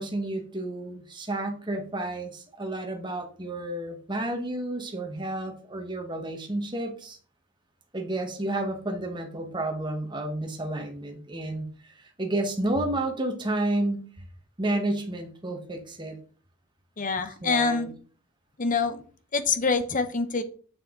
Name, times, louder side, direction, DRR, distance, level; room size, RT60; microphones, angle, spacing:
voice 1, 0.0-7.2 7.9-14.1 14.6-16.2 17.4-17.9, right 1 dB, 20° right, 3 dB, 1.3 m, -31 dB
voice 2, 17.0-17.9 18.6-19.0 19.3-20.4, left 4 dB, 35° left, 10 dB, 0.8 m, -25 dB
7.0 x 6.6 x 3.8 m, 0.42 s
head